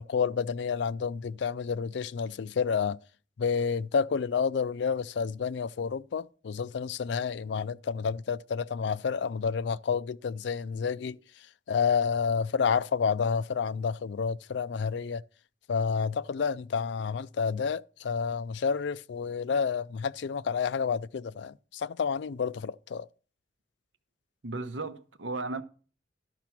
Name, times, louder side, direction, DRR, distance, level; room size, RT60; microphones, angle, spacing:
voice 1, 0.0-3.0 3.4-11.2 11.7-15.2 15.7-23.1, left 6 dB, 70° left, 0.4 m, -29 dB
voice 2, 24.4-25.6, right 3 dB, 90° right, 0.9 m, -35 dB
12.5 x 5.9 x 5.9 m
head